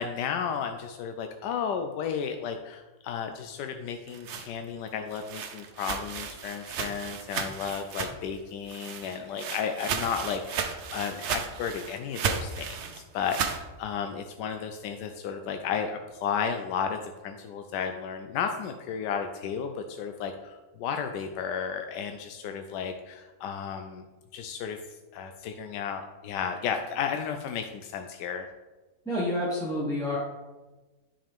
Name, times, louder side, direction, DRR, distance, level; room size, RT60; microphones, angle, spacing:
voice 1, 0.0-24.0 24.3-24.8 25.1-28.5, left 7 dB, 90° left, 6 dB, 1.2 m, -33 dB
sound 1, 3.9-8.4 8.7-13.6, right 7 dB, 60° right, 0.7 m, -34 dB
voice 2, 29.1-30.2, left 1 dB, 5° left, -7 dB, 1.0 m, -28 dB
10.0 x 4.9 x 3.5 m, 1.2 s
omnidirectional pair, 1.8 m